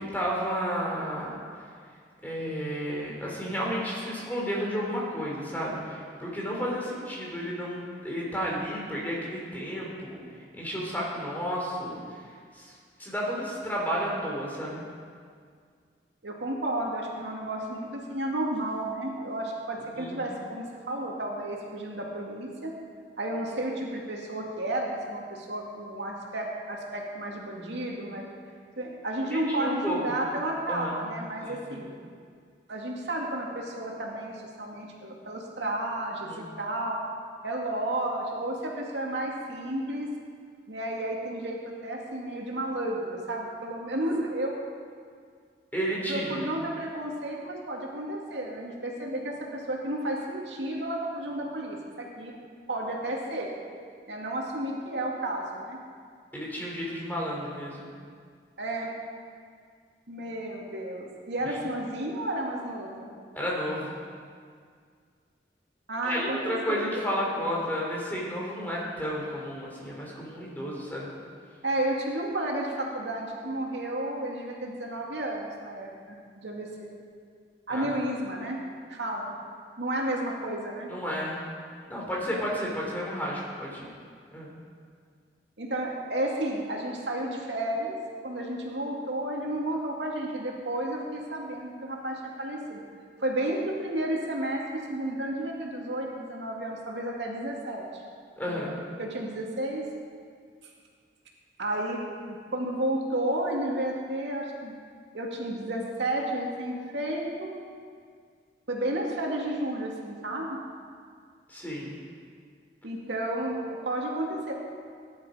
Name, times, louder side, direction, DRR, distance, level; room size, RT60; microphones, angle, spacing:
voice 1, 0.0-1.4 2.2-10.2 10.5-12.0 12.5-12.7 13.0-14.8 19.9-20.2 29.3-30.2 30.7-31.0 31.5-31.8 36.2-36.4 45.7-46.5 56.3-57.8 63.3-63.9 66.0-71.1 77.7-77.9 80.9-81.4 81.9-83.9 84.3-84.5 98.4-98.8 111.5-112.0, equal, 10° left, -4 dB, 3.3 m, -32 dB
voice 2, 16.2-22.7 23.2-28.2 28.8-31.9 32.7-37.0 37.4-40.1 40.7-41.6 41.8-44.5 46.1-52.3 52.7-53.5 54.1-55.8 58.6-58.9 60.1-63.1 65.9-67.1 71.6-76.9 77.7-78.6 78.9-79.4 79.8-80.9 85.6-88.0 88.2-92.8 93.2-98.0 98.5-98.7 99.0-99.8 101.6-104.7 105.1-107.5 108.7-110.6 112.8-114.5, right 1 dB, 80° right, -2 dB, 2.4 m, -32 dB
18.5 x 11.0 x 5.1 m, 2.1 s
head